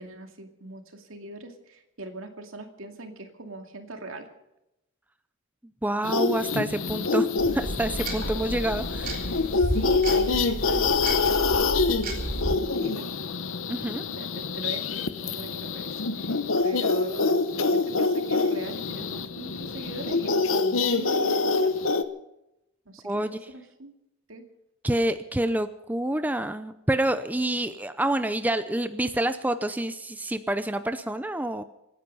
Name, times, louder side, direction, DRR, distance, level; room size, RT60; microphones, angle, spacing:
voice 1, 0.0-4.3 8.2-8.3 9.7-13.1 14.1-21.8 22.9-23.9 24.3-24.4, right 2 dB, 75° right, 5 dB, 2.4 m, -41 dB
voice 2, 5.8-9.3 13.7-14.1 23.0-23.4 24.8-31.6, right 1 dB, 10° right, 10 dB, 0.6 m, -28 dB
sound 1, 6.0-22.0, left 4 dB, 75° left, 1.0 m, -26 dB
sound 2, 7.4-12.5, right 1 dB, 45° right, 3.5 m, -32 dB
26.0 x 10.0 x 5.5 m, 0.89 s
head